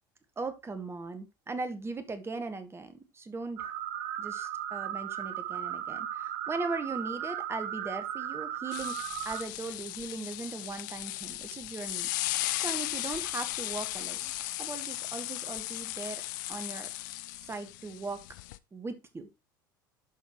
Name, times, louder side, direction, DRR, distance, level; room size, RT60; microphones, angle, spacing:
voice 1, 0.4-3.7 4.2-9.0 9.2-12.1 12.6-14.3 14.6-16.2 16.5-16.9 17.5-18.2 18.7-19.3, right 3 dB, 25° right, 1.8 m, -39 dB
sound 1, 3.6-9.4, right 10 dB, 60° right, 0.9 m, -36 dB
sound 2, 8.7-18.6, left 18 dB, 65° left, 0.5 m, -36 dB
11.5 x 5.4 x 3.1 m
hypercardioid pair, 70°, 11 cm